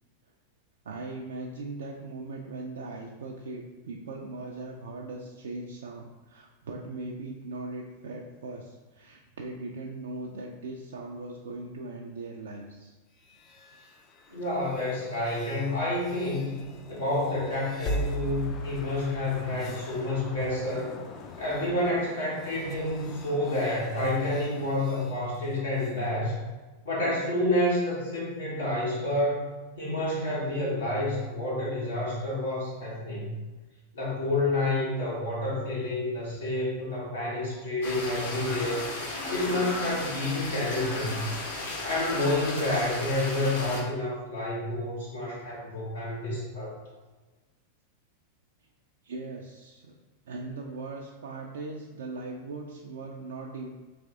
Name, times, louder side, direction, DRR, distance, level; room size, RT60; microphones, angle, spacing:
voice 1, 0.9-13.0 49.0-49.9 50.3-53.7, right 3 dB, 65° right, 0 dB, 0.4 m, -39 dB
sound 1, 13.2-26.0, left 1 dB, 35° left, 0.4 m, -40 dB
voice 2, 14.3-16.6 16.9-20.9 21.4-26.4 26.8-29.4 29.8-33.3 33.9-38.9 39.3-41.2 41.8-46.7, left 1 dB, 80° left, -9 dB, 1.5 m, -29 dB
sound 2, 37.8-43.8, left 2 dB, 60° left, 1.0 m, -34 dB
3.4 x 3.2 x 3.5 m, 1.3 s
figure-of-eight pair, 90°, 0 cm